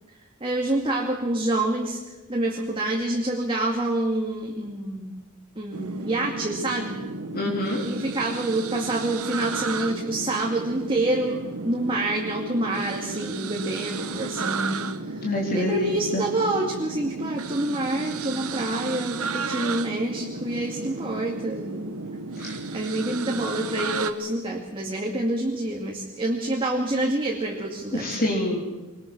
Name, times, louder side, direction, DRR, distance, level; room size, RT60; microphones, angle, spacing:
voice 1, 0.4-2.0 2.3-5.2 5.6-7.0 7.8-15.3 15.5-22.0 22.7-28.1, right 1 dB, 25° right, -1 dB, 2.4 m, -27 dB
sound 1, 5.7-24.1, right 4 dB, 75° right, 1.3 m, -33 dB
voice 2, 7.3-7.9 14.2-14.3 15.2-16.2 22.4-22.6 27.9-28.6, left 1 dB, 45° left, -2 dB, 3.6 m, -26 dB
24.0 x 20.5 x 6.2 m, 1.2 s
head